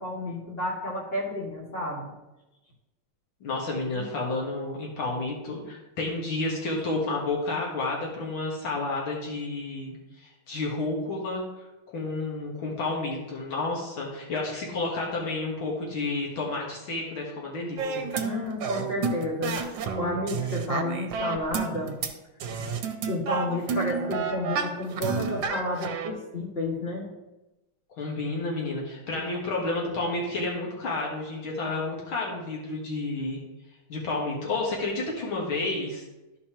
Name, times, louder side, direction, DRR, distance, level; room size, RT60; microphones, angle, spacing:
voice 1, 0.0-2.1 3.9-4.0 18.2-19.6 20.0-22.0 22.6-22.7 23.1-27.1, left 1 dB, 30° left, -4 dB, 2.1 m, -31 dB
voice 2, 3.4-10.0 10.2-11.4 11.9-18.0 27.9-33.4 33.9-36.0, left 2 dB, 75° left, -3 dB, 2.3 m, -30 dB
sound 1, 17.8-22.1 22.4-26.1, right 5 dB, 70° right, 1.4 m, -30 dB
13.0 x 5.2 x 2.9 m, 1.0 s
omnidirectional pair, 2.3 m